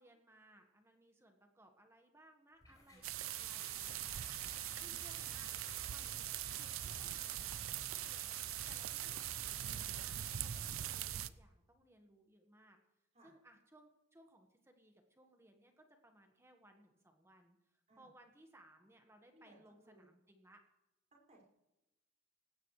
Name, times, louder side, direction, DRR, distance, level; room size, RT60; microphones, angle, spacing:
voice 1, 0.0-4.4 4.8-5.5 5.9-6.3 6.5-12.8 13.2-20.6, right 1 dB, 15° right, 4 dB, 1.4 m, -64 dB
sound 1, 2.6-11.0, left 2 dB, 20° left, 4.8 m, -56 dB
voice 2, 2.8-4.0 13.1-13.3 17.9-18.1 19.3-20.1 21.1-21.4, right 1 dB, 35° right, -3 dB, 5.4 m, -66 dB
sound 2, 3.0-11.3, right 12 dB, 90° right, 0.5 m, -42 dB
18.5 x 16.0 x 3.2 m, 0.96 s
head